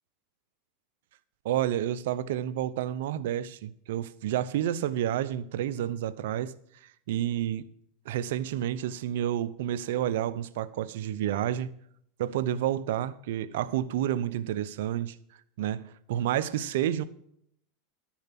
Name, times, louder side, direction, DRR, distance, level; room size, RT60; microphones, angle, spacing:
voice 1, 1.4-6.5 6.8-7.6 8.1-11.7 12.2-15.2 15.6-17.0, right 11 dB, 75° right, 0.7 m, -30 dB
11.5 x 7.3 x 5.8 m
supercardioid pair, 120°, 0 cm